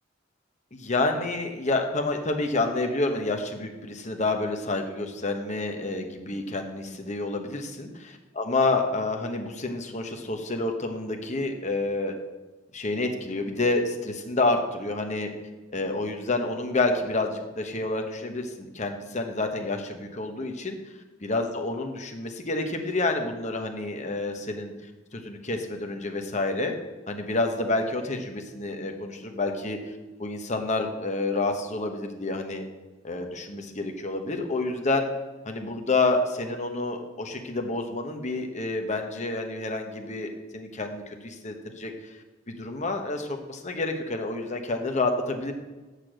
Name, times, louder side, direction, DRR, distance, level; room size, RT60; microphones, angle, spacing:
voice 1, 0.7-7.9 8.4-12.1 12.7-15.3 15.7-20.8 21.3-24.7 25.1-26.7 27.1-29.8 30.2-32.6 33.0-35.1 35.4-41.9 42.5-45.5, left 2 dB, 40° left, 4 dB, 1.2 m, -28 dB
7.0 x 6.7 x 7.8 m, 1.2 s
head